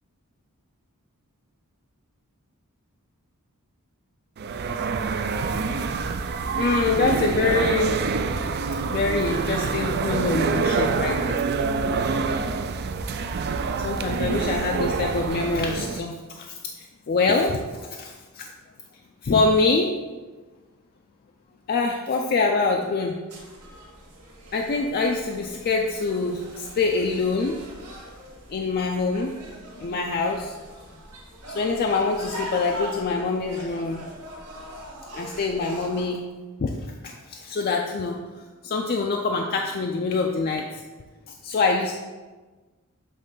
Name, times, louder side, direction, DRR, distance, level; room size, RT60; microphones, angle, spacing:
sound 1, 4.4-16.0, right 4 dB, 45° right, 0.3 m, -26 dB
voice 1, 6.6-8.0 8.8-11.4 13.8-17.6 17.9-18.5 19.2-19.9 21.7-23.2 24.5-27.6 28.5-29.3 29.8-30.6 31.5-34.0 35.1-36.2 36.6-38.2 38.6-40.8 41.3-41.9, left 3 dB, 45° left, 2 dB, 0.4 m, -25 dB
sound 2, 23.3-36.1, right 1 dB, 85° right, 1.5 m, -41 dB
7.7 x 3.5 x 3.8 m, 1.3 s
head